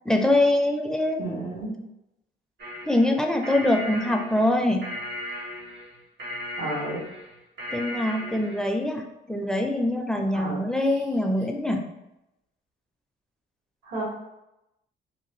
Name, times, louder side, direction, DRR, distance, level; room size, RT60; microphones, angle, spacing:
voice 1, 0.1-1.4 2.9-4.9 7.7-11.8, left 1 dB, 5° left, 2 dB, 0.4 m, -24 dB
voice 2, 1.2-1.7 6.6-7.0 10.3-10.7 13.8-14.0, right 2 dB, 90° right, -5 dB, 1.1 m, -31 dB
sound 1, 2.6-8.7, left 1 dB, 65° right, 0.9 m, -36 dB
2.7 x 2.1 x 3.1 m, 0.90 s
cardioid pair, 90°, 20 cm